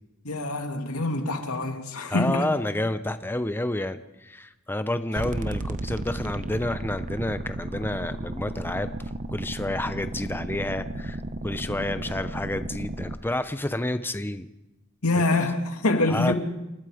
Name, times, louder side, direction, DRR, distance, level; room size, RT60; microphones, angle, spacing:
voice 1, 0.2-2.5 15.0-16.4, left 2 dB, 85° left, 2.4 m, -25 dB
voice 2, 2.1-8.9 9.3-14.5 15.1-15.2 16.1-16.3, left 1 dB, 10° left, 0.7 m, -29 dB
sound 1, 5.2-13.2, right 1 dB, 35° right, 1.0 m, -34 dB
28.0 x 20.0 x 5.0 m
head